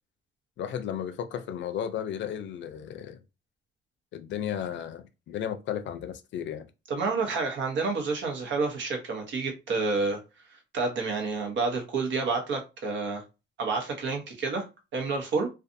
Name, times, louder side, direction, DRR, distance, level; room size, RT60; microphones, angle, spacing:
voice 1, 0.6-3.2 4.1-6.7, left 9 dB, 65° left, 0.5 m, -34 dB
voice 2, 6.9-10.2 10.5-13.2 13.6-14.6 14.9-15.5, right 4 dB, 70° right, 1.0 m, -29 dB
2.5 x 2.4 x 2.6 m
cardioid pair, 90°, 20 cm